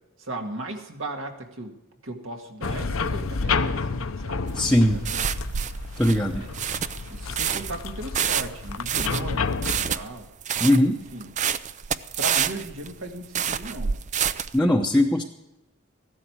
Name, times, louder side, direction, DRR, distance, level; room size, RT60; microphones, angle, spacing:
voice 1, 0.2-1.7 2.0-3.8 4.2-5.3 6.2-6.6 7.1-10.3 10.5-11.3 12.2-13.9, right 1 dB, 70° right, 3 dB, 2.1 m, -37 dB
sound 1, 2.6-10.0, left 4 dB, 85° left, 0.8 m, -30 dB
voice 2, 4.5-5.0 6.0-6.4 10.6-11.0 14.5-15.2, left 1 dB, 5° left, 0 dB, 0.8 m, -20 dB
sound 2, 4.5-14.6, right 8 dB, 35° right, 0.4 m, -28 dB
15.5 x 12.5 x 4.7 m, 0.98 s
head